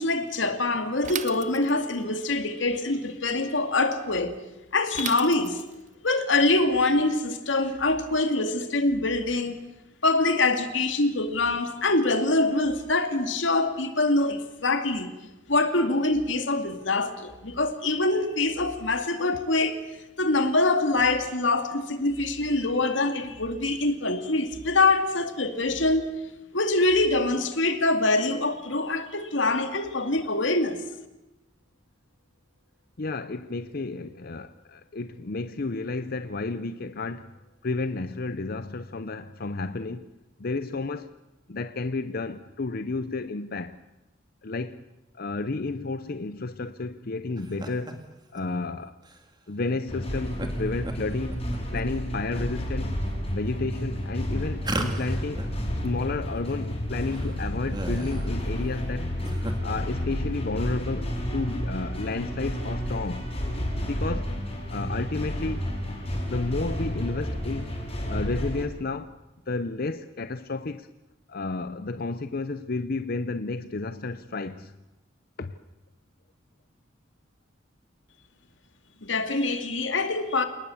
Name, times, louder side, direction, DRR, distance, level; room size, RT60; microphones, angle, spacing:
voice 1, 0.0-4.4 4.7-5.6 6.0-9.6 10.0-15.1 15.5-19.8 20.2-26.1 26.5-30.8 79.0-80.4, left 2 dB, 90° left, 2.4 m, -24 dB
Bicycle / Mechanisms, 1.0-2.0 4.9-5.9, right 8 dB, 40° right, 0.9 m, -36 dB
voice 2, 33.0-37.3 37.6-40.1 40.4-41.1 41.5-43.8 44.4-44.8 45.1-48.0 48.3-49.0 49.5-51.4 51.7-53.0 53.3-55.4 55.8-59.1 59.6-63.3 63.9-64.4 64.7-65.7 66.3-67.7 68.1-69.2 69.5-70.9 71.3-74.8 75.4-75.6, left 3 dB, 55° left, 0.8 m, -31 dB
sound 1, 47.4-47.9 48.3-48.4 49.0-49.2 50.4-50.5 50.8-51.8 52.3-52.8 53.4-53.5 54.6-55.6 55.8-55.9 56.1-56.2 56.7-56.8 57.0-58.4 59.0-59.5, right 1 dB, 25° right, 2.4 m, -35 dB
sound 2, 49.9-68.6, equal, 35° left, 6.7 m, -31 dB
28.5 x 19.5 x 7.2 m
head